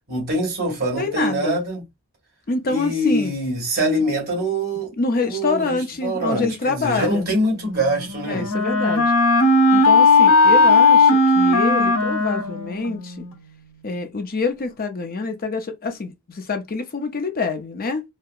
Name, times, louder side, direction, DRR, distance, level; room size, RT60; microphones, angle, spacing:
voice 1, 0.1-1.8 2.7-4.9 5.2-8.5, right 1 dB, 45° right, 2.1 m, -24 dB
voice 2, 1.0-1.6 2.5-3.3 5.0-7.3 8.3-9.1 9.7-13.3 13.8-18.0, left 4 dB, 40° left, 0.6 m, -26 dB
Wind instrument woodwind instrument, 7.6-13.4, left 3 dB, 75° left, 0.9 m, -16 dB
4.6 x 2.1 x 2.4 m
head